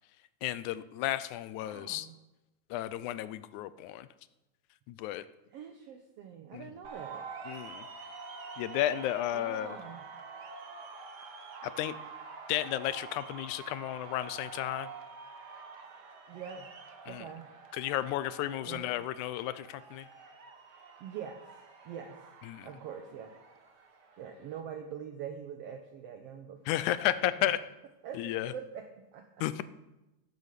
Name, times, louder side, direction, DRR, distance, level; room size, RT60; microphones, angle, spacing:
voice 1, 0.4-2.1 2.7-4.1 4.9-5.3 6.5-6.7 7.5-7.9 8.6-9.8 11.6-12.0 12.5-14.9 17.1-17.3 17.7-20.1 22.5-22.7 26.7-27.6 28.1-28.5 29.4-29.6, left 13 dB, 85° left, 15 dB, 2.1 m, -33 dB
voice 2, 1.6-2.1 5.5-7.2 9.3-10.0 16.3-16.7 17.1-17.5 18.6-18.9 21.0-21.4 21.9-22.2 22.6-23.3 24.2-27.0 28.0-28.9 29.1-29.2, right 8 dB, 65° right, 5 dB, 1.7 m, -44 dB
sound 1, 6.8-24.6, right 4 dB, 50° right, 1.4 m, -47 dB
15.0 x 8.1 x 6.7 m, 1.0 s
omnidirectional pair, 3.4 m